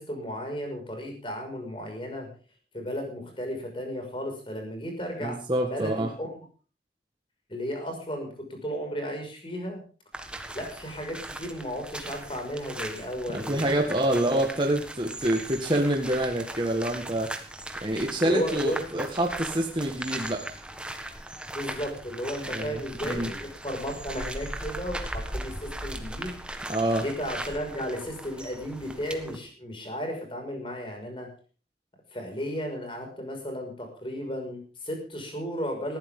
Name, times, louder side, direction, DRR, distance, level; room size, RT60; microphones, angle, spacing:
voice 1, 0.0-2.3 2.7-5.4 5.7-6.4 7.5-9.8 10.5-13.9 18.2-19.0 21.5-31.3 32.1-36.0, equal, 30° left, 3 dB, 6.1 m, -34 dB
voice 2, 5.2-6.1 13.3-17.3 17.8-20.4 22.5-23.3 26.7-27.0, right 1 dB, 25° right, 1 dB, 1.8 m, -27 dB
sound 1, 10.1-29.4, right 1 dB, 5° right, 1.5 m, -38 dB
20.0 x 14.5 x 3.9 m, 0.38 s
head